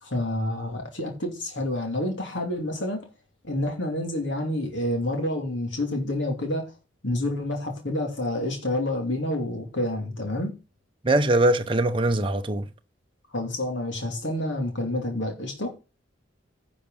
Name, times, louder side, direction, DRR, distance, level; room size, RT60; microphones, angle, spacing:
voice 1, 0.0-3.1 3.5-6.7 7.0-10.5 13.3-15.7, left 1 dB, 65° left, 2.6 m, -28 dB
voice 2, 11.0-12.7, right 1 dB, 25° right, 0.8 m, -22 dB
10.5 x 5.2 x 5.5 m
head